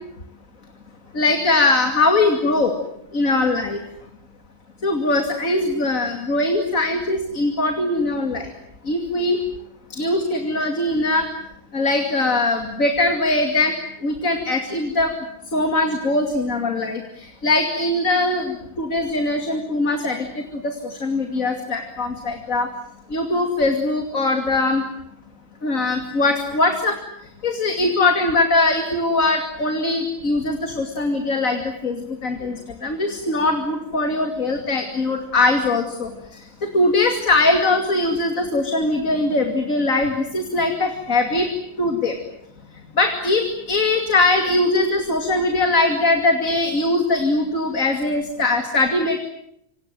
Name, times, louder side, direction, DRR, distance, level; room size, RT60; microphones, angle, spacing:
voice 1, 1.1-2.7 3.1-3.8 4.8-8.5 8.8-9.4 9.9-11.3 11.7-13.7 14.0-15.1 15.5-22.7 23.1-24.8 25.6-26.9 27.4-36.4 36.7-41.5 41.8-42.2 43.0-49.2, left 2 dB, 85° left, 5 dB, 3.0 m, -21 dB
27.5 x 26.5 x 7.7 m, 0.77 s
omnidirectional pair, 1.4 m